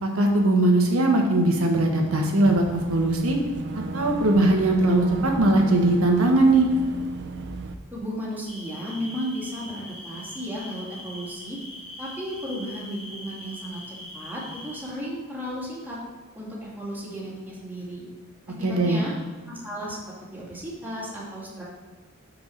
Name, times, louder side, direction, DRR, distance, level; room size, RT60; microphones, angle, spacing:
voice 1, 0.0-3.4 3.7-6.7 18.6-19.0, right 2 dB, 85° right, 1 dB, 1.3 m, -20 dB
Boat Water vehicle / Engine, 2.5-7.7, right 3 dB, 55° right, 0.5 m, -35 dB
voice 2, 7.9-11.6 12.0-16.0 16.3-18.1 18.6-19.1 19.5-20.0 20.3-21.6, equal, 10° right, -6 dB, 2.1 m, -34 dB
sound 1, 8.5-14.8, left 1 dB, 35° left, 2.5 m, -42 dB
6.2 x 4.7 x 6.4 m, 1.4 s
head